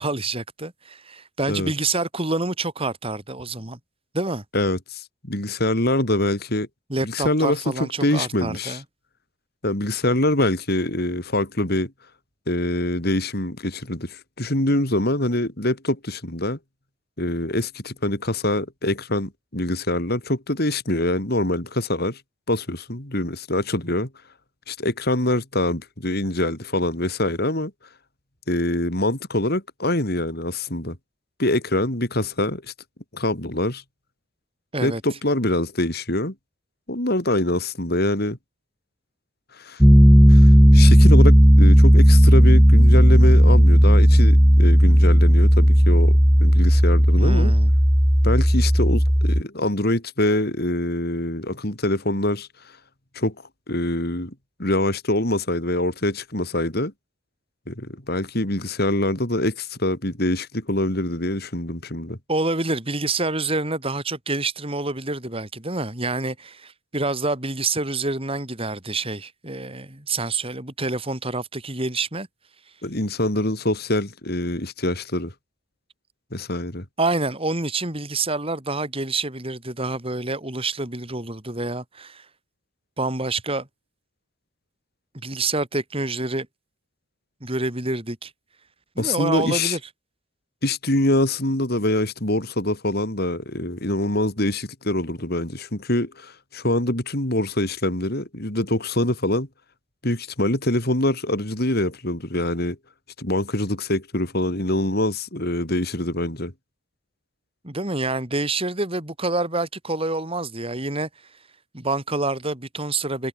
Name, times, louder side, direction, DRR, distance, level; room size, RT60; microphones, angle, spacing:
voice 1, 0.0-3.8 4.1-4.4 6.9-8.8 34.7-35.0 47.1-47.7 62.3-72.3 77.0-82.3 83.0-83.7 85.1-86.5 87.4-88.3 89.0-89.8 107.6-111.1 111.7-113.3, right 2 dB, 25° right, 4.2 m, -27 dB
voice 2, 4.5-6.7 7.0-8.8 9.6-11.9 12.5-16.6 17.2-22.2 22.5-24.1 24.7-27.7 28.5-31.0 31.4-32.7 33.1-33.8 34.8-36.3 36.9-38.4 39.6-39.8 40.3-47.5 48.2-52.5 53.1-53.3 53.7-54.3 54.6-56.9 57.7-62.2 72.8-75.3 76.3-76.9 89.0-89.8 90.6-99.5 100.0-102.8 103.2-106.5, left 1 dB, 50° left, 4.1 m, -24 dB
Piano, 39.8-49.4, equal, 5° right, 2.5 m, -13 dB
head